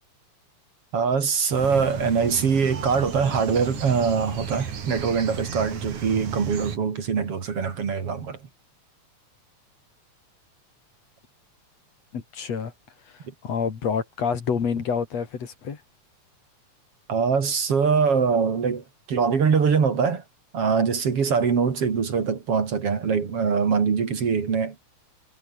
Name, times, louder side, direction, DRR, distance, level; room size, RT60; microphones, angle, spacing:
voice 1, 0.9-8.4 17.1-20.2 20.5-24.7, right 6 dB, 50° right, 3.3 m, -23 dB
sound 1, 1.5-6.8, right 7 dB, 85° right, 4.5 m, -34 dB
voice 2, 12.1-12.7 13.1-15.8, left 6 dB, 60° left, 3.8 m, -28 dB
omnidirectional pair, 3.4 m